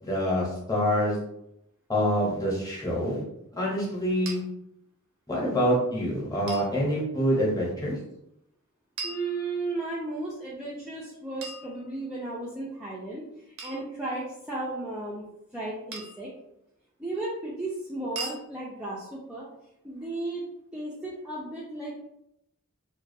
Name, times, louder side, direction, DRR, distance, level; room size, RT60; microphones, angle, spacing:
voice 1, 0.0-1.2 1.9-3.2 3.5-4.4 5.3-8.0, equal, 15° left, -5 dB, 0.8 m, -26 dB
sound 1, 4.3-4.4 6.5-6.7 9.0-9.9 11.4-12.3 13.6-13.9 15.9-16.3 18.2-18.4, right 3 dB, 65° right, 0.5 m, -39 dB
voice 2, 9.0-13.3 13.6-15.2 15.5-16.3 17.0-19.5 19.8-20.4 20.7-22.0, right 2 dB, 5° right, -7 dB, 0.3 m, -34 dB
2.3 x 2.2 x 2.6 m, 0.80 s
head